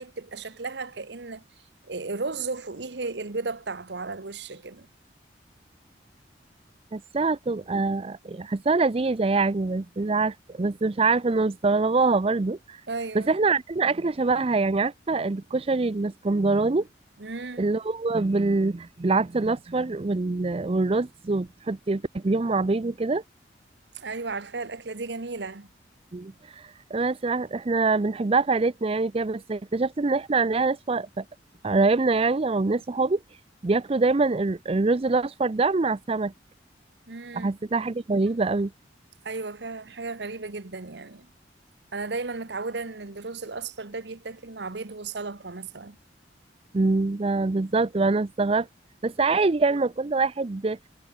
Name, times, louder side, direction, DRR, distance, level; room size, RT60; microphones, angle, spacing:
voice 1, 0.0-1.4 1.8-4.9 12.9-13.3 17.2-17.7 23.9-25.7 37.1-37.6 39.2-41.3 41.9-46.0, right 3 dB, 70° right, 1.1 m, -34 dB
voice 2, 6.9-12.8 13.1-16.9 17.6-23.2 26.1-31.2 31.6-33.2 33.6-36.3 37.3-38.7 46.7-48.7 49.0-50.8, right 3 dB, 35° right, 0.5 m, -24 dB
head